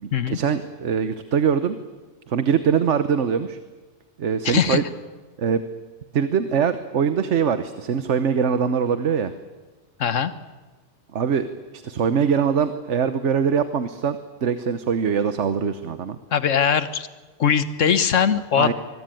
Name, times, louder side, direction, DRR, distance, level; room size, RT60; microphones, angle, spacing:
voice 1, 0.0-1.8 2.3-3.6 4.2-4.8 5.4-5.6 6.1-9.3 11.1-11.4 11.7-16.2 18.6-18.7, right 7 dB, 70° right, 11 dB, 1.3 m, -22 dB
voice 2, 4.4-4.8 10.0-10.3 16.3-17.1 17.4-18.7, left 7 dB, 80° left, 13 dB, 1.5 m, -20 dB
24.5 x 22.5 x 9.1 m, 1.3 s
omnidirectional pair, 1.3 m